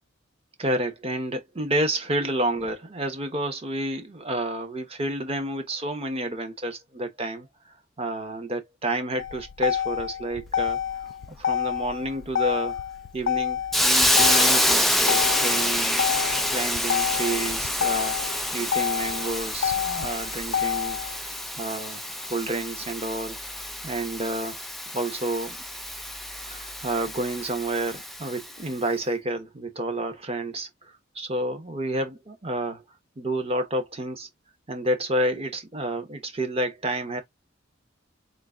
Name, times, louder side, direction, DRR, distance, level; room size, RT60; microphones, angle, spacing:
voice 1, 0.6-7.5 8.0-12.8 13.1-16.1 16.5-18.2 18.5-21.0 21.6-22.0 22.3-23.5 23.8-24.7 24.9-25.6 26.5-32.8 33.2-34.3 34.7-37.2, right 1 dB, 30° right, 1.0 m, -30 dB
Motor vehicle (road), 9.2-21.2, left 9 dB, 60° left, 0.4 m, -28 dB
Hiss, 13.7-28.5, left 1 dB, ahead, 0.5 m, -27 dB
3.8 x 2.2 x 3.6 m
head